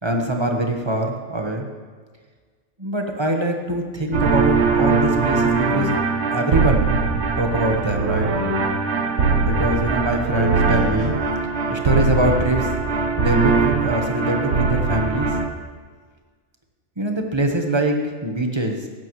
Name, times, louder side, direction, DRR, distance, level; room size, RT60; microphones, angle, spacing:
voice 1, 0.0-1.7 2.8-5.9 6.3-6.9 7.4-8.3 9.4-11.1 11.7-12.7 13.2-15.3 17.0-18.9, right 1 dB, 20° right, 3 dB, 1.1 m, -23 dB
sound 1, 4.1-15.5, right 4 dB, 60° right, 1.2 m, -21 dB
16.0 x 12.0 x 3.1 m, 1.5 s
omnidirectional pair, 1.3 m